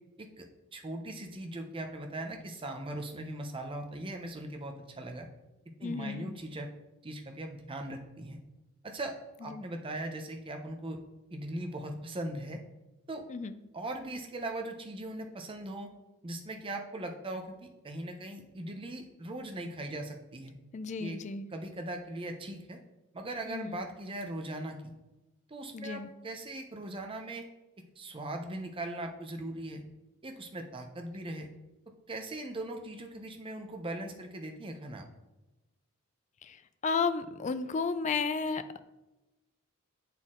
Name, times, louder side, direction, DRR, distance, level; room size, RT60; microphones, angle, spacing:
voice 1, 0.7-5.3 5.8-6.7 7.0-8.4 8.8-11.0 11.3-12.6 13.1-13.2 13.7-15.9 16.2-20.5 21.0-21.2 21.5-22.8 23.1-24.8 25.5-27.5 28.0-29.8 30.2-31.5 32.1-35.1, right 1 dB, 25° right, 3 dB, 0.6 m, -39 dB
voice 2, 5.8-6.3 9.5-9.6 13.3-13.5 20.7-21.5 23.5-23.8 25.7-26.1 36.4-38.8, left 5 dB, 30° left, 12 dB, 0.3 m, -33 dB
7.9 x 4.2 x 3.7 m, 1.0 s
head